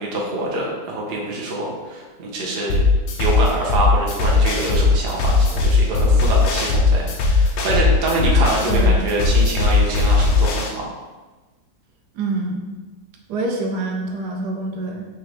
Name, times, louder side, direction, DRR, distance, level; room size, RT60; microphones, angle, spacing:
voice 1, 0.0-2.8 3.2-10.9, right 2 dB, 50° right, -3 dB, 0.8 m, -25 dB
sound 1, 2.7-10.7, left 3 dB, 75° left, 1.1 m, -18 dB
voice 2, 8.6-9.0 12.1-12.6 13.3-15.1, right 2 dB, 80° right, 1 dB, 1.2 m, -26 dB
3.7 x 3.0 x 3.2 m, 1.2 s
omnidirectional pair, 1.7 m